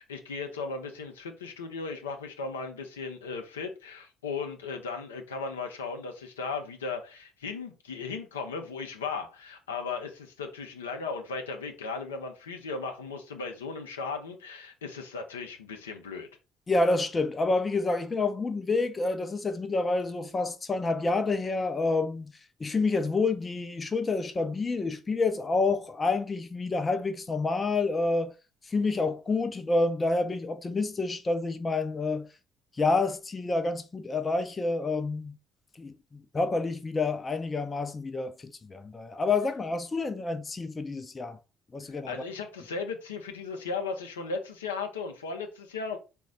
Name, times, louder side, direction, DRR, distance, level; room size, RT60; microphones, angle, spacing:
voice 1, 0.0-16.3 41.8-46.0, left 4 dB, 75° left, 0.5 m, -36 dB
voice 2, 16.7-22.3 22.6-28.3 28.6-32.3 32.8-35.4 35.8-41.4 41.7-42.1, left 3 dB, 25° left, 0.5 m, -28 dB
4.0 x 2.3 x 3.6 m
figure-of-eight pair, 50°, 0 cm